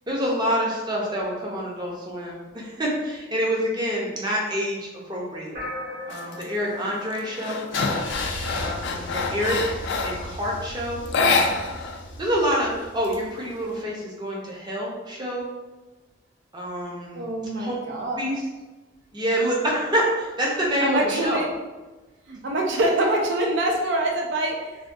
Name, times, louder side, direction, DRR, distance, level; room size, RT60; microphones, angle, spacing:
voice 1, 0.1-5.6 6.1-7.7 8.5-11.6 12.2-15.5 16.5-17.3 17.5-17.7 18.1-18.4 19.1-21.4, equal, 25° right, -3 dB, 0.6 m, -27 dB
sound 1, 5.5-8.2, left 1 dB, 50° right, 0.9 m, -37 dB
sound 2, 6.1-6.5 6.9-10.3 11.0-12.0 12.3-12.4 12.8-13.7, left 4 dB, 60° left, 0.3 m, -26 dB
Car / Engine starting / Idling, 7.7-13.6, left 1 dB, 80° left, 0.7 m, -36 dB
voice 2, 17.1-18.3 20.8-21.5 22.3-24.8, right 1 dB, 65° right, 0 dB, 0.4 m, -25 dB
3.4 x 2.2 x 2.6 m, 1.2 s
head